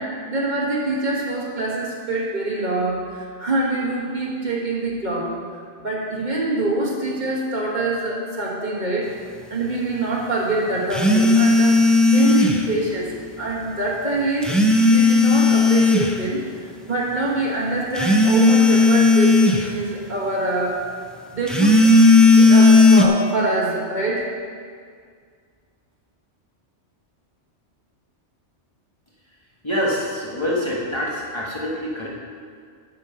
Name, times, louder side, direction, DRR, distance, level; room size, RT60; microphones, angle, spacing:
voice 1, 0.0-9.1 9.5-13.1 13.4-16.4 16.9-20.9 21.3-21.9 22.4-24.3, right 2 dB, 40° right, -5 dB, 1.7 m, -25 dB
sound 1, 10.9-12.7 14.4-16.1 18.0-19.7 21.5-23.1, left 3 dB, ahead, 0.4 m, -14 dB
voice 2, 29.6-32.1, equal, 25° left, -5 dB, 1.3 m, -25 dB
8.6 x 7.2 x 5.6 m, 2.1 s
omnidirectional pair, 1.2 m